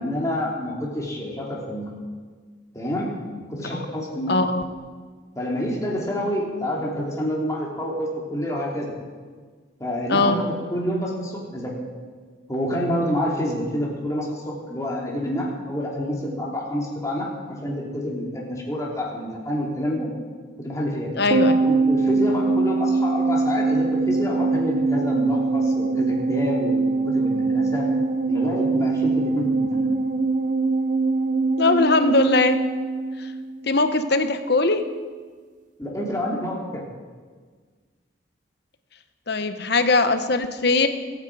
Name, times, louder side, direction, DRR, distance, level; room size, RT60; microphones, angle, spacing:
voice 1, 0.0-1.9 2.7-3.1 3.5-4.4 5.3-8.9 9.8-11.7 12.5-20.1 20.6-21.1 21.6-27.9 28.3-30.0 35.8-36.8, equal, 15° left, -3 dB, 3.0 m, -28 dB
voice 2, 4.3-4.6 10.1-10.4 21.2-21.6 31.6-32.6 33.2-33.3 33.7-34.8 39.3-40.9, left 3 dB, 60° left, 9 dB, 1.0 m, -20 dB
sound 1, 21.3-33.8 34.1-34.2, right 3 dB, 40° right, 1.0 m, -22 dB
22.5 x 9.2 x 4.8 m, 1.5 s
head